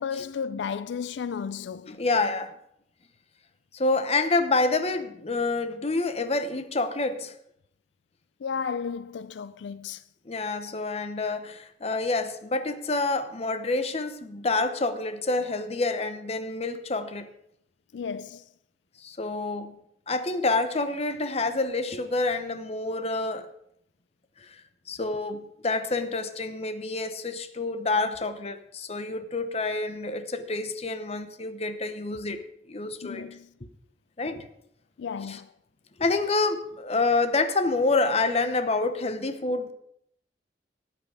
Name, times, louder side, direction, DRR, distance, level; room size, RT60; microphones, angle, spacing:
voice 1, 0.0-2.0 8.4-10.0 17.9-18.4 33.0-33.5 35.0-35.5, left 6 dB, 85° left, 0.4 m, -33 dB
voice 2, 1.9-2.6 3.7-7.4 10.3-17.3 19.0-19.8 20.1-23.5 24.4-24.6 24.9-33.3 34.2-34.5 35.3-35.4 36.0-39.7, left 3 dB, 35° left, 0.9 m, -28 dB
13.5 x 8.8 x 4.8 m
head